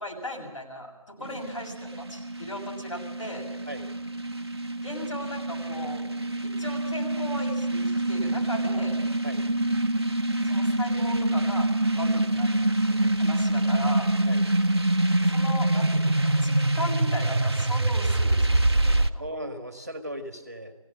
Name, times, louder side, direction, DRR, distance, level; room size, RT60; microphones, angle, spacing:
voice 1, 0.0-3.5 4.8-6.0 6.4-8.9 10.4-11.7 11.9-12.6 12.9-14.1 15.3-19.2, left 1 dB, 65° left, -1 dB, 7.5 m, -37 dB
sound 1, 1.2-19.1, right 1 dB, 45° right, 0.8 m, -25 dB
voice 2, 19.2-20.7, equal, 30° right, 7 dB, 1.7 m, -37 dB
20.5 x 16.5 x 7.6 m, 1.2 s
figure-of-eight pair, 175°, 18 cm